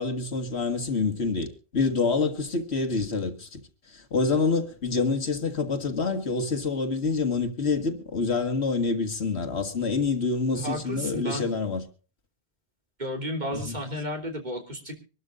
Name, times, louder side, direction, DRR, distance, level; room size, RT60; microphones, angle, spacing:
voice 1, 0.0-3.6 3.9-11.9 13.5-13.7, left 4 dB, 75° left, 2.1 m, -27 dB
voice 2, 10.5-11.5 13.0-15.0, equal, 45° right, 3.4 m, -33 dB
25.0 x 12.5 x 2.5 m
omnidirectional pair, 1.1 m